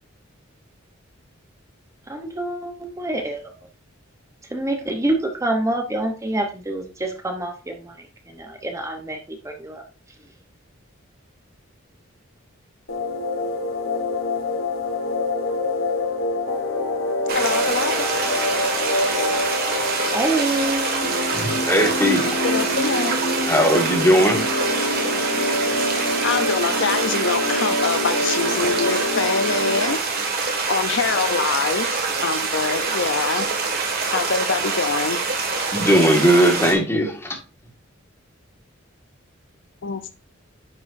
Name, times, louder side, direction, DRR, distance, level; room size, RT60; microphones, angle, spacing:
voice 1, 2.1-3.5 4.5-9.8 20.1-21.1, right 1 dB, 15° right, 0.8 m, -26 dB
sound 1, 12.9-30.0, left 2 dB, 85° left, 1.2 m, -26 dB
voice 2, 17.3-18.1 22.3-23.2 26.2-30.0 30.7-33.5 34.1-35.2 39.8-40.1, left 5 dB, 60° left, 0.6 m, -25 dB
sound 2, 17.3-36.7, right 4 dB, 50° right, 1.8 m, -25 dB
voice 3, 21.3-22.2 23.5-24.5 35.7-37.4, equal, 10° left, 1.7 m, -18 dB
10.0 x 5.6 x 2.6 m
head